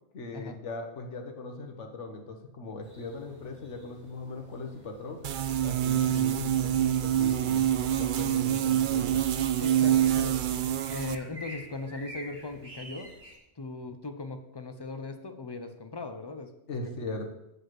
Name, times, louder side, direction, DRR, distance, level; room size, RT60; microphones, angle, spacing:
voice 1, 0.1-5.3 5.6-9.2 16.7-17.3, left 3 dB, 80° left, 4 dB, 1.5 m, -39 dB
sound 1, 2.8-13.4, equal, 35° right, 1.8 m, -51 dB
sound 2, 5.2-11.2, right 11 dB, 60° right, 0.6 m, -26 dB
voice 2, 9.6-10.4 10.9-13.1 13.6-16.5, left 3 dB, 30° left, 8 dB, 0.6 m, -38 dB
8.1 x 5.3 x 6.0 m, 0.89 s
omnidirectional pair, 1.2 m